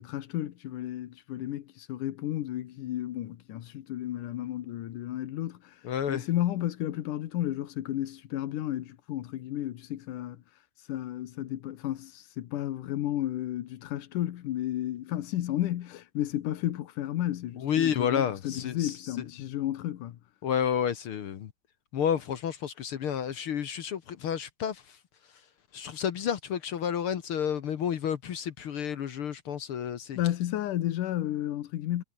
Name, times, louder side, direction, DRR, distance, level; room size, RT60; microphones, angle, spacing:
voice 1, 0.0-10.4 10.9-20.2 30.1-32.0, left 13 dB, 90° left, 2.8 m, -32 dB
voice 2, 5.8-6.2 17.6-18.9 20.4-21.5 21.9-24.8 25.7-30.2, left 8 dB, 55° left, 1.7 m, -30 dB
omnidirectional pair, 3.5 m